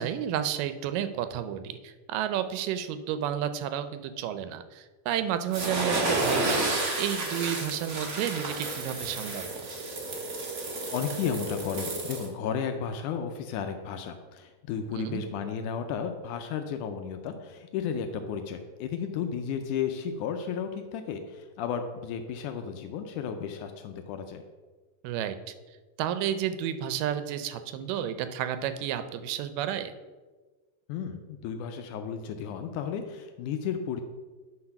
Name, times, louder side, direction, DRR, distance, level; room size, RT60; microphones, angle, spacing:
voice 1, 0.0-9.6 14.9-15.2 25.0-25.5 26.0-29.9, right 10 dB, 85° right, 10 dB, 2.2 m, -31 dB
sound 1, 5.5-12.3, right 2 dB, 60° right, 0.9 m, -31 dB
voice 2, 10.9-24.4 30.9-34.0, left 7 dB, 80° left, 7 dB, 1.9 m, -33 dB
8.7 x 4.3 x 5.8 m, 1.3 s
omnidirectional pair, 3.9 m